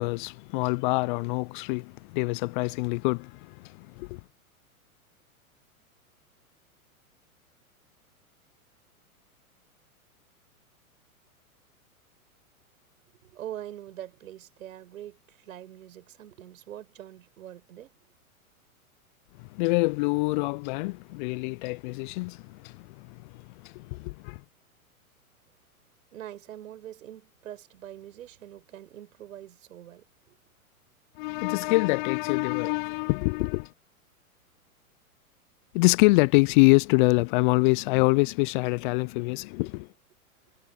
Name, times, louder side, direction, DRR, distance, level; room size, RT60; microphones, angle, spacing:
voice 1, 0.0-4.2 19.4-24.4 31.2-33.7 35.7-39.9, left 27 dB, 35° left, 0.5 m, -25 dB
voice 2, 13.2-18.0 26.1-30.4, right 11 dB, 65° right, 6.7 m, -43 dB
hypercardioid pair, 105°, 43 cm